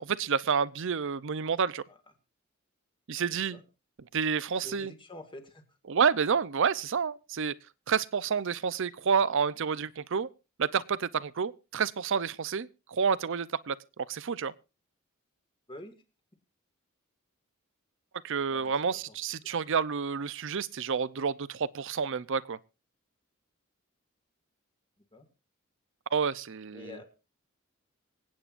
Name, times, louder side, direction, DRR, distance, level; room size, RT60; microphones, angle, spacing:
voice 1, 0.0-1.8 3.1-3.6 4.1-4.9 5.9-7.5 7.9-10.3 10.6-14.5 18.2-22.6 26.1-27.0, right 6 dB, 60° right, 0.6 m, -29 dB
voice 2, 3.3-3.6 4.6-5.6 15.7-15.9 18.5-19.2 25.1-25.3 26.7-27.0, left 1 dB, 25° left, 1.8 m, -47 dB
25.5 x 8.8 x 2.5 m
head